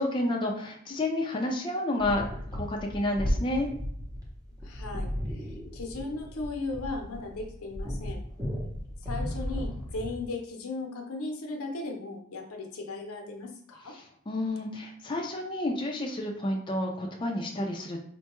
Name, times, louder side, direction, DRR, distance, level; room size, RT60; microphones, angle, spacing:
voice 1, 0.0-2.2 2.5-3.7 14.0-18.0, left 1 dB, 20° left, 0 dB, 0.4 m, -30 dB
sound 1, 2.0-10.3, equal, 15° right, 0.7 m, -35 dB
voice 2, 4.6-8.2 9.0-13.9, left 3 dB, 90° left, 3 dB, 0.7 m, -37 dB
4.3 x 2.2 x 2.9 m, 0.64 s
head